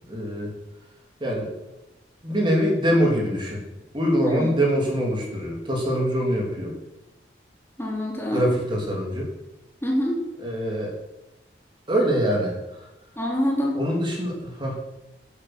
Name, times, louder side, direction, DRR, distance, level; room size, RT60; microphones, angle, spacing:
voice 1, 0.1-0.5 1.2-1.5 2.2-3.6 3.9-6.7 8.3-9.3 10.4-10.9 11.9-12.9 13.7-14.8, equal, 25° right, -1 dB, 3.3 m, -24 dB
voice 2, 7.8-8.5 9.8-10.2 13.2-13.8, equal, 15° left, -2 dB, 3.0 m, -25 dB
17.5 x 8.3 x 6.2 m, 0.96 s
head